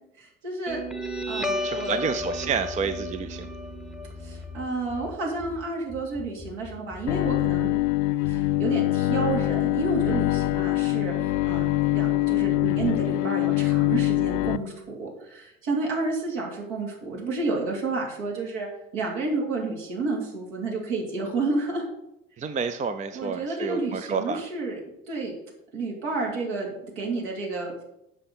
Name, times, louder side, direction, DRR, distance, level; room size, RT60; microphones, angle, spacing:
voice 1, 0.2-0.8 1.3-2.0 4.2-7.9 8.3-11.6 11.9-18.7 18.9-21.8 23.1-24.8 25.1-25.3 25.7-27.8, right 3 dB, 65° right, -1 dB, 2.8 m, -30 dB
Guitar, 0.7-7.7, left 1 dB, ahead, 1.0 m, -34 dB
voice 2, 1.6-3.5 22.4-24.4, right 5 dB, 20° right, 9 dB, 0.5 m, -29 dB
Bowed string instrument, 7.1-14.6, left 16 dB, 65° left, 0.5 m, -24 dB
7.6 x 5.8 x 6.6 m, 0.84 s
figure-of-eight pair, 60°, 39 cm